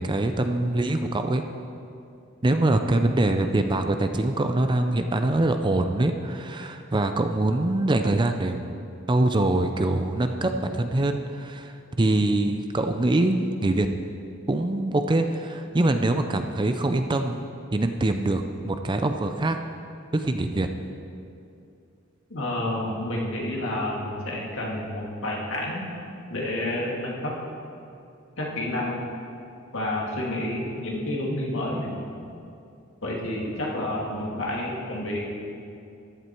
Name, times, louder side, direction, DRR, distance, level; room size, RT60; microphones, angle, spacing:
voice 1, 0.0-1.4 2.4-13.9 14.5-19.6 20.1-20.7, right 2 dB, 20° right, 6 dB, 0.5 m, -24 dB
voice 2, 22.3-25.9 26.3-27.3 28.4-29.0 29.7-32.0 33.0-35.3, left 1 dB, 65° left, -3 dB, 2.4 m, -29 dB
14.0 x 11.0 x 4.5 m, 2.6 s
head